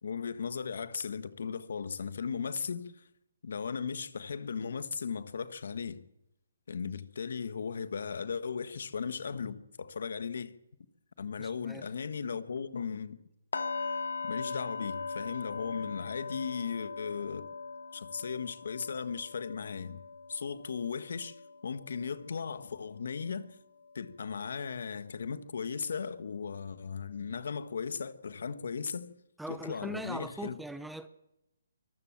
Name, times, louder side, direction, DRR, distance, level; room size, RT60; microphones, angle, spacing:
voice 1, 0.0-3.0 3.4-6.0 6.7-10.6 11.2-13.2 14.2-17.5 17.9-20.0 20.3-23.6 23.9-29.1 29.5-30.6, left 6 dB, 65° left, 1.5 m, -37 dB
voice 2, 11.4-11.9 29.4-31.1, right 1 dB, ahead, 0.8 m, -41 dB
sound 1, 13.5-23.5 23.8-24.1 24.5-24.6, left 4 dB, 85° left, 2.6 m, -41 dB
24.5 x 14.5 x 7.5 m
hypercardioid pair, 160°, 0 cm